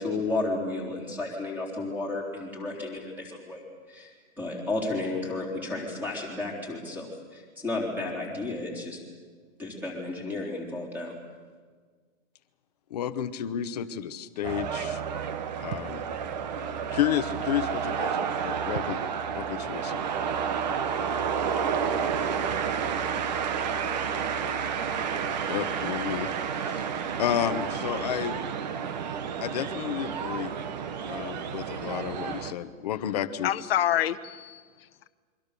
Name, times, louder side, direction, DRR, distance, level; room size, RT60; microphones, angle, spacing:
voice 1, 0.0-4.1 4.4-9.0 9.6-11.1, left 2 dB, 5° right, -1 dB, 3.7 m, -32 dB
voice 2, 12.9-15.0 15.6-16.0 16.9-19.0 19.3-20.0 25.5-26.3 26.6-26.9 27.2-28.4 29.4-30.5 31.1-33.5, left 10 dB, 30° left, 11 dB, 1.0 m, -31 dB
sound 1, 14.4-32.5, right 7 dB, 30° right, 1.2 m, -30 dB
voice 3, 33.4-35.1, left 12 dB, 45° left, 10 dB, 1.2 m, -28 dB
28.0 x 24.0 x 6.8 m, 1.5 s
hypercardioid pair, 175°, 41 cm